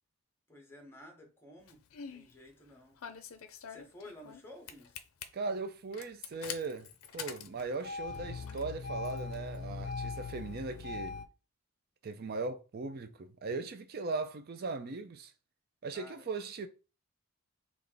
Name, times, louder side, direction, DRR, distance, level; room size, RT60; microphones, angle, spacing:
voice 1, 0.5-1.8 2.1-3.0 3.7-5.0 15.9-16.2, left 1 dB, 10° left, 0.8 m, -53 dB
Engine starting, 1.7-2.3 3.0-4.4 4.7-5.2 5.9-11.2, left 5 dB, 70° left, 0.5 m, -41 dB
voice 2, 5.3-6.9 7.1-11.2 12.0-15.3 15.8-16.7, right 3 dB, 45° right, 0.4 m, -38 dB
3.4 x 2.4 x 3.8 m
head